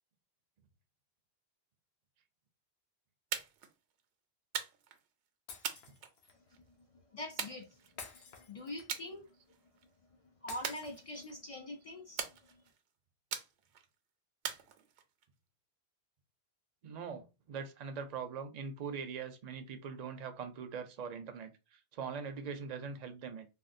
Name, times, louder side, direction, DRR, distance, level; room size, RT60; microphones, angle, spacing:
sound 1, 3.3-3.7 4.5-5.0 5.6-6.6 7.4-8.2 8.9-9.1 9.5-9.8 10.6-11.4 12.2-12.8 13.3-13.9 14.4-15.2, right 8 dB, 85° right, 0.9 m, -41 dB
Shatter, 5.5-6.4 8.0-9.1 10.5-11.5, left 5 dB, 75° left, 0.9 m, -51 dB
voice 1, 7.1-7.7 8.5-9.2 10.4-12.6, left 1 dB, 50° left, 0.4 m, -44 dB
voice 2, 16.8-23.5, right 6 dB, 50° right, 0.5 m, -42 dB
3.5 x 2.3 x 2.5 m
omnidirectional pair, 1.1 m